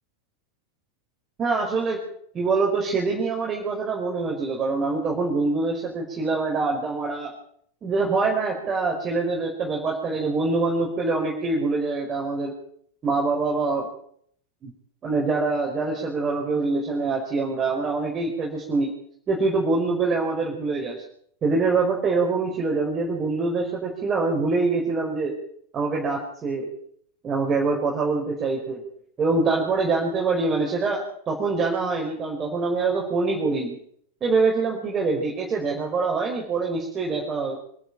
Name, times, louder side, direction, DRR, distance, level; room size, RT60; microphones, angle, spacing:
voice 1, 1.4-2.0 2.3-7.3 7.8-12.5 13.0-13.9 14.6-14.7 15.0-18.9 19.3-21.0 21.4-25.3 25.7-26.7 27.2-28.8 29.2-33.8 34.2-37.6, right 3 dB, 25° right, 0 dB, 5.0 m, -24 dB
26.0 x 11.5 x 8.8 m, 0.66 s
figure-of-eight pair, 90°, 0 cm